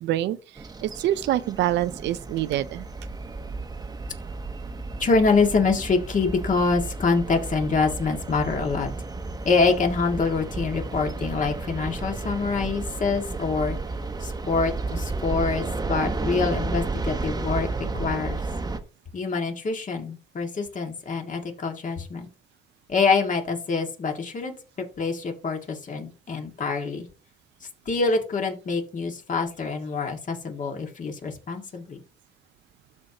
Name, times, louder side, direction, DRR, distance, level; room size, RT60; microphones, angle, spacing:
voice 1, 0.0-2.9, right 13 dB, 85° right, 0.5 m, -26 dB
sound 1, 0.6-18.8, right 3 dB, 20° right, 0.9 m, -32 dB
voice 2, 5.0-8.9 9.4-13.8 14.2-17.7 17.9-18.4 19.1-22.3 22.9-24.5 25.0-27.1 27.9-32.0, left 4 dB, 45° left, 2.0 m, -25 dB
13.0 x 4.7 x 2.9 m
cardioid pair, 100°, 18 cm